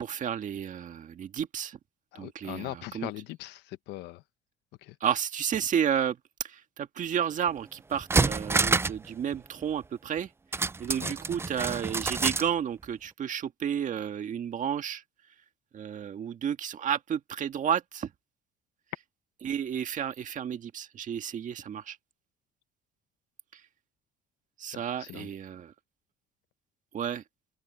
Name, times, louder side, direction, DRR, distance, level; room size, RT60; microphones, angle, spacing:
voice 1, 0.0-1.8 2.1-3.1 5.0-15.0 15.7-18.1 19.4-22.0 23.5-23.6 24.6-25.7 26.9-27.2, right 8 dB, 50° right, 1.7 m, -32 dB
voice 2, 2.1-4.2 4.8-4.9 11.0-11.1 24.7-25.3, left 17 dB, 90° left, 1.2 m, -40 dB
sound 1, 7.5-7.6 7.9-9.1 9.3-9.4 10.5-12.5 12.8-12.9, right 3 dB, 15° right, 0.4 m, -27 dB
open air
cardioid pair, 110°, 17 cm